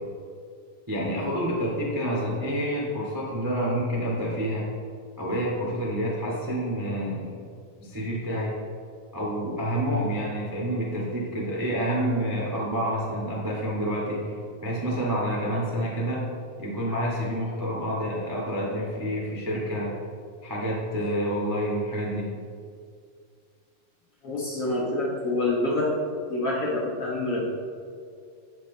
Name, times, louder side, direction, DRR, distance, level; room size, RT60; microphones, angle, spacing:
voice 1, 0.9-4.7 5.2-7.4 7.8-8.5 9.1-16.2 16.6-19.9 20.4-22.3, equal, 10° right, -4 dB, 1.1 m, -28 dB
voice 2, 24.2-25.9 26.2-27.4, left 2 dB, 45° left, -5 dB, 2.3 m, -27 dB
13.5 x 8.7 x 4.2 m, 2.3 s
omnidirectional pair, 4.4 m